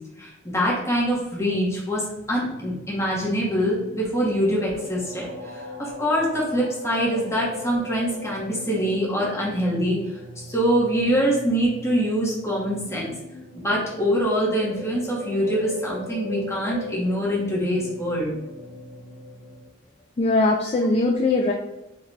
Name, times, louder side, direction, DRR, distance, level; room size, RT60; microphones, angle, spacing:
voice 1, 0.2-2.0 2.3-10.0 10.5-13.1 13.5-18.3, equal, 15° left, -5 dB, 1.3 m, -24 dB
sound 1, 2.3-19.6, left 2 dB, 65° right, 0.7 m, -39 dB
voice 2, 20.2-21.5, left 2 dB, 35° left, 0 dB, 0.3 m, -20 dB
3.8 x 2.4 x 4.1 m, 0.94 s
head